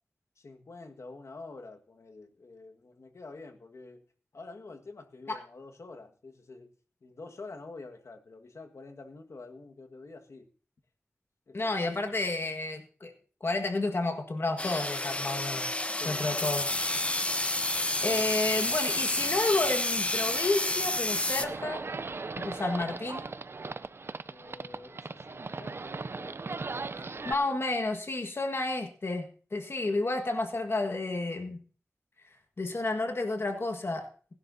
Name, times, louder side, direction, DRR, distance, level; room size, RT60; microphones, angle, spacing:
voice 1, 0.4-4.0 4.3-6.7 7.0-10.5 11.5-11.8 15.9-16.4 18.0-18.3 24.3-26.4 26.7-27.6, left 3 dB, 75° left, 5 dB, 1.6 m, -48 dB
voice 2, 11.5-13.1 13.4-15.7 16.0-16.7 18.0-21.8 22.4-23.3 27.0-29.3 29.5-31.6 32.6-34.1, left 2 dB, 55° left, 5 dB, 1.6 m, -31 dB
sound 1, 14.6-21.5, left 1 dB, 25° left, 0.9 m, -30 dB
Livestock farm animals working animals, 21.4-27.3, right 3 dB, 55° right, 0.5 m, -38 dB
20.0 x 11.5 x 2.7 m, 0.40 s
wide cardioid pair, 65°, 5 cm